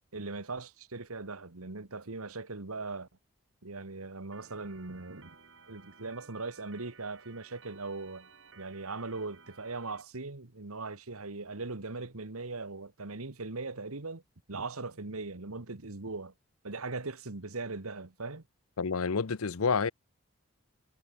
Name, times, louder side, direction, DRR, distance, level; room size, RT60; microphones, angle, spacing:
voice 1, 0.1-3.1 3.6-5.4 5.7-8.3 8.6-14.2 14.5-16.3 16.6-18.4, right 3 dB, 90° right, 1.7 m, -39 dB
Organ, 4.3-10.0, right 5 dB, 60° right, 6.7 m, -56 dB
voice 2, 18.8-19.9, left 5 dB, 85° left, 0.7 m, -28 dB
head